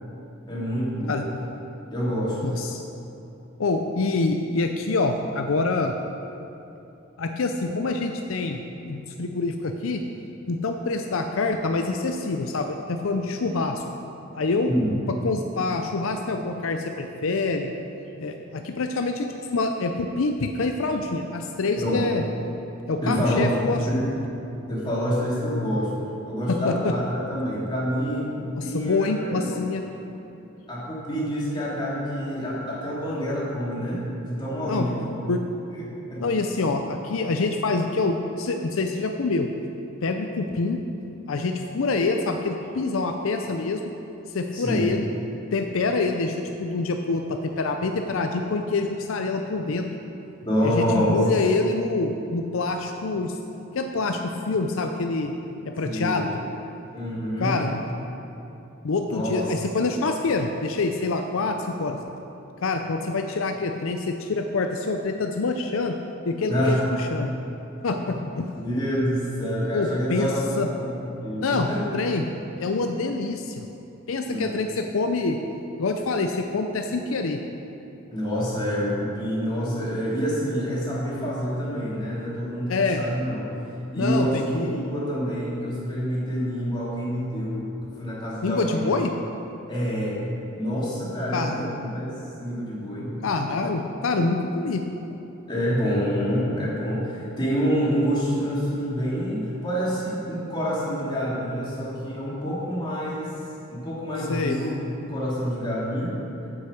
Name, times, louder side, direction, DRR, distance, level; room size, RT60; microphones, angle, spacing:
voice 1, 0.5-1.2 1.9-2.4 14.7-15.0 21.8-22.0 23.0-23.6 23.9-24.1 24.7-27.0 27.3-29.6 30.7-35.1 35.7-36.3 44.5-44.9 50.4-51.2 55.8-56.3 56.9-57.6 59.1-59.5 66.5-66.9 68.0-68.1 68.6-71.8 74.3-74.6 78.1-83.5 83.9-88.9 89.7-90.2 90.5-92.1 92.4-93.1 95.5-103.3 103.7-104.7 105.0-106.2, equal, 20° left, -7 dB, 2.7 m, -27 dB
voice 2, 2.4-2.8 3.6-6.0 7.2-10.0 10.5-13.8 14.3-14.7 15.2-17.7 18.2-22.2 22.9-23.8 26.5-26.9 28.6-29.8 34.7-34.9 35.3-35.4 36.2-39.5 40.0-40.8 41.3-43.8 44.3-45.1 45.5-49.9 50.6-53.4 53.7-55.3 55.7-56.4 57.4-57.7 58.8-62.0 62.6-65.9 66.3-67.3 67.8-68.5 69.7-70.3 70.6-70.7 71.3-71.7 71.9-72.3 72.6-73.6 74.1-75.4 75.8-77.4 82.7-83.0 84.0-84.8 88.4-89.1 91.3-91.6 93.2-94.8 104.3-104.6, left 3 dB, 75° left, 5 dB, 0.5 m, -26 dB
8.6 x 7.9 x 6.3 m, 2.9 s
head